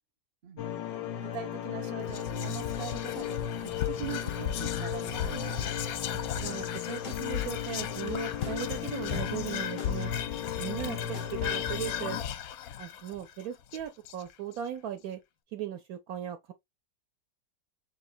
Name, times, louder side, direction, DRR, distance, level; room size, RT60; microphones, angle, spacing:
sound 1, 0.6-12.2, left 9 dB, 85° left, 1.5 m, -36 dB
voice 1, 1.2-5.6, right 8 dB, 45° right, 0.8 m, -42 dB
Whispering, 2.0-14.5, left 10 dB, 70° left, 0.9 m, -36 dB
sound 2, 6.4-6.5 7.0-7.2 8.1-8.5 9.1-9.2 9.8-9.9 10.5-10.6 10.8-11.3 11.7-11.8, left 2 dB, 50° left, 1.4 m, -40 dB
voice 2, 6.4-10.1 10.6-12.2 12.8-15.2 15.5-16.5, right 10 dB, 70° right, 0.9 m, -38 dB
6.2 x 2.7 x 2.5 m
omnidirectional pair, 1.9 m